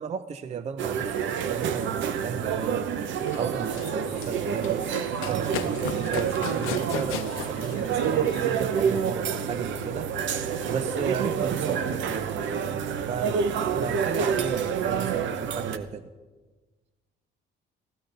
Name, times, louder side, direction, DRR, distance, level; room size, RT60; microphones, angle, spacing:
voice 1, 0.0-2.9 3.4-10.1 10.7-16.1, right 7 dB, 35° right, 12 dB, 0.5 m, -34 dB
sound 1, 0.8-15.8, right 7 dB, 65° right, 0.7 m, -28 dB
Run, 3.1-9.1, left 10 dB, 90° left, 0.6 m, -38 dB
14.5 x 13.5 x 3.8 m, 1.3 s
cardioid pair, 120°, 21 cm